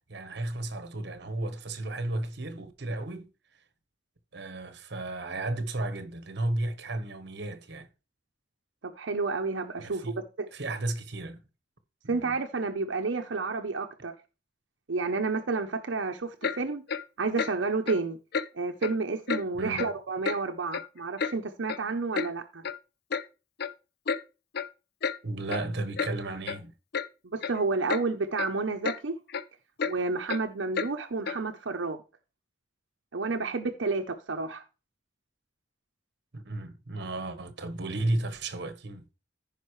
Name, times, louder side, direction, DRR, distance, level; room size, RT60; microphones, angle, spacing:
voice 1, 0.1-3.3 4.3-7.9 9.8-10.2 10.5-11.4 12.0-12.3 19.6-19.9 25.2-26.7 36.3-39.0, right 2 dB, 65° right, 1.1 m, -34 dB
voice 2, 8.8-10.5 12.1-14.1 14.9-16.8 17.2-18.2 18.5-22.6 27.3-29.2 29.8-32.0 33.1-34.6, right 3 dB, 80° right, 0.8 m, -30 dB
Clock, 16.4-16.6 16.9-17.0 17.4-17.5 17.9-18.0 18.3-18.5 18.8-19.0 19.3-19.4 19.8-19.9 20.3-20.4 20.7-21.3 21.7-21.8 22.1-22.3 22.6-22.8 23.1-23.3 23.6-23.7 24.1-24.2 24.5-24.7 25.0-25.2 25.5-25.6 26.0-26.1 26.5-26.6 26.9-27.1 27.4-27.6 27.9-28.0 28.4-28.5 28.8-29.0 29.3-29.4 29.8-29.9 30.3-30.4 30.7-30.9 31.3-31.4, left 6 dB, 55° left, 0.5 m, -31 dB
14.5 x 5.2 x 3.2 m
head